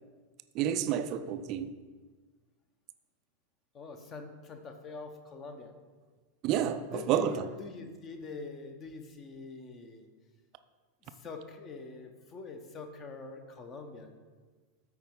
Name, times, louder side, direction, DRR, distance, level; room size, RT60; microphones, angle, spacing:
voice 1, 0.5-1.7 6.4-7.4, right 9 dB, 40° right, 0.4 m, -30 dB
voice 2, 3.7-5.7 6.9-10.1 11.0-14.1, left 3 dB, 30° left, 0.9 m, -44 dB
13.0 x 4.5 x 3.7 m
figure-of-eight pair, 90°, 0 cm